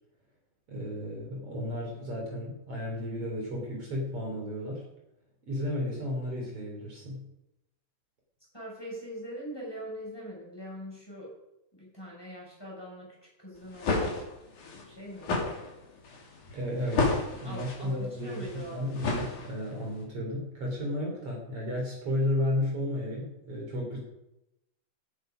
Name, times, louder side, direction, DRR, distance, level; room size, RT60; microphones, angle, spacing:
voice 1, 0.7-4.9 5.4-7.3 16.5-17.1 17.4-18.4 18.7-24.0, left 1 dB, 45° right, -2 dB, 4.5 m, -33 dB
voice 2, 8.5-11.3 11.7-14.3 14.8-15.3 17.4-19.0, equal, 5° left, -4 dB, 6.2 m, -42 dB
sound 1, 13.6-19.8, left 3 dB, 75° left, 4.6 m, -32 dB
17.5 x 10.5 x 5.2 m, 0.89 s
omnidirectional pair, 3.6 m